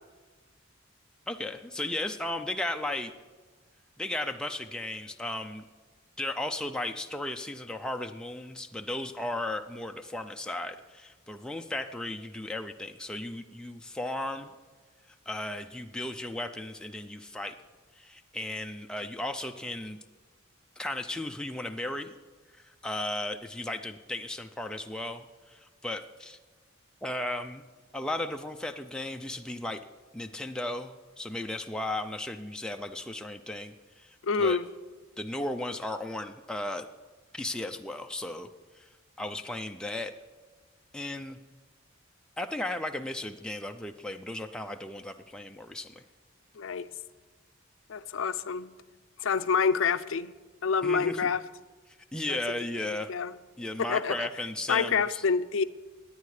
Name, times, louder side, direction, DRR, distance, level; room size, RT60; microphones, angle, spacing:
voice 1, 1.3-3.1 4.0-5.7 6.2-14.5 15.3-17.6 18.0-20.0 20.8-22.1 22.5-26.4 27.0-27.6 27.9-29.8 30.1-34.6 35.2-36.9 37.3-38.5 38.8-38.9 39.2-40.1 40.9-41.4 42.4-46.0 50.8-51.2 52.1-53.1 53.6-55.2, left 1 dB, 5° left, 4 dB, 0.4 m, -35 dB
voice 2, 34.2-34.7 46.6-46.9 47.9-48.7 49.2-50.3 50.6-51.4 52.3-52.4 53.1-53.3 53.8-54.3 54.7-55.6, left 5 dB, 70° left, 13 dB, 0.5 m, -27 dB
24.0 x 9.4 x 3.3 m, 1.4 s
head